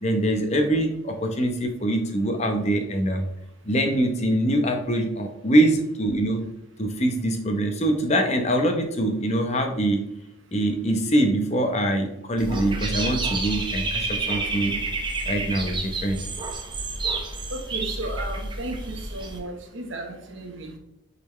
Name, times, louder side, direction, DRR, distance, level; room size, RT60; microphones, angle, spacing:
voice 1, 0.0-3.3 3.6-6.4 6.8-10.1 10.5-14.8 15.3-16.2, right 1 dB, 35° left, 5 dB, 0.9 m, -23 dB
Dog / Bird, 12.4-19.4, right 3 dB, 25° right, 0.9 m, -29 dB
voice 2, 17.5-20.8, right 1 dB, 70° right, 4 dB, 1.1 m, -34 dB
8.6 x 4.2 x 3.2 m, 0.80 s
head